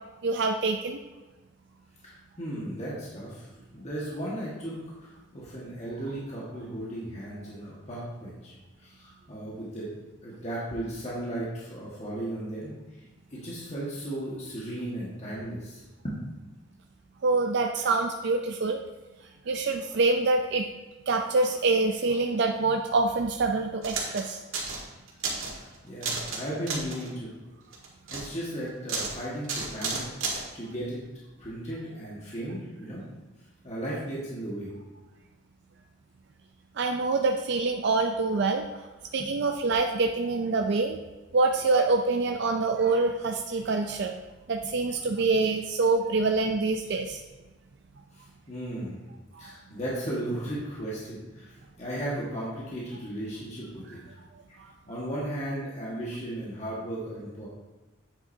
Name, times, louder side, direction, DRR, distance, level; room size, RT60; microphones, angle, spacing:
voice 1, 0.2-1.0 17.2-18.8 19.5-20.7 21.1-24.4 36.8-38.8 39.1-41.0 41.3-44.1 44.5-47.2 49.3-49.5 54.6-54.7, right 3 dB, 55° right, 4 dB, 0.4 m, -25 dB
voice 2, 2.0-4.7 5.0-9.9 10.2-13.0 13.3-16.2 25.5-27.3 28.1-31.0 31.4-33.0 33.6-34.7 39.2-39.3 48.1-49.0 49.4-51.5 51.8-54.0 54.5-54.6 54.9-57.5, right 1 dB, 35° left, -7 dB, 1.6 m, -36 dB
sound 1, 23.8-24.2 24.5-24.8 25.1-25.6 26.0-26.4 26.7-27.1 27.7-28.3 28.9-29.1 29.4-30.4, right 4 dB, 85° right, 1.7 m, -32 dB
8.2 x 7.8 x 2.7 m, 1.2 s
head